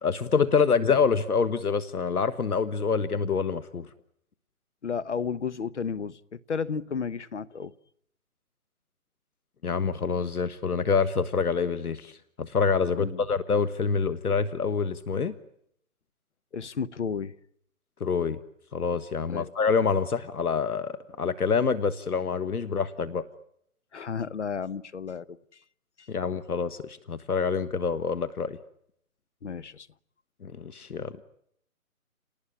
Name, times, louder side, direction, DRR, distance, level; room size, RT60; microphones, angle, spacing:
voice 1, 0.0-3.9 9.6-15.3 18.0-18.4 18.7-23.2 26.1-28.6 30.4-31.2, left 5 dB, 75° left, 1.5 m, -26 dB
voice 2, 4.8-7.7 13.0-13.2 16.5-17.3 19.3-19.5 23.9-25.4 26.0-26.1 29.4-29.9, left 6 dB, 50° left, 1.0 m, -33 dB
28.5 x 19.0 x 9.9 m
hypercardioid pair, 165°, 45 cm